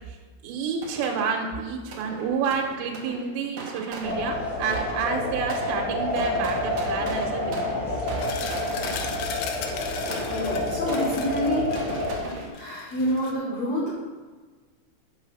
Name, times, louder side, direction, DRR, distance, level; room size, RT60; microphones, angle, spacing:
voice 1, 0.4-7.9, right 5 dB, 85° right, 0 dB, 3.7 m, -29 dB
sound 1, 0.8-1.5 1.9-5.2 5.5-9.4 10.1-12.5, right 4 dB, 70° right, 2.0 m, -38 dB
sound 2, 4.0-12.2, left 1 dB, 20° left, 2.9 m, -29 dB
sound 3, 8.2-13.3, left 7 dB, 80° left, 2.5 m, -37 dB
voice 2, 10.3-12.1 12.5-13.9, equal, 55° left, -8 dB, 2.0 m, -28 dB
7.9 x 7.1 x 6.2 m, 1.4 s
omnidirectional pair, 5.7 m